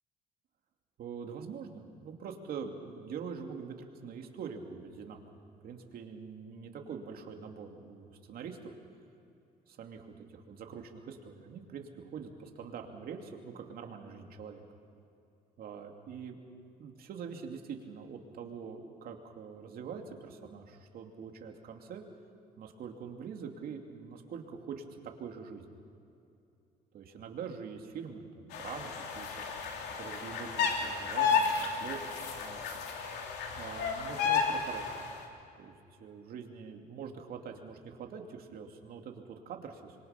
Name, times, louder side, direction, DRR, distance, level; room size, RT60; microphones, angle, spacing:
voice 1, 1.0-8.8 9.7-14.6 15.6-16.4 16.8-22.0 22.6-25.8 26.9-29.4 30.0-32.6 33.6-34.9 35.6-35.7 36.0-40.0, right 6 dB, 60° right, 3 dB, 2.7 m, -44 dB
sound 1, 28.5-35.1, left 6 dB, 85° left, 2.9 m, -32 dB
25.5 x 23.0 x 5.9 m, 2.7 s
cardioid pair, 110°, 17 cm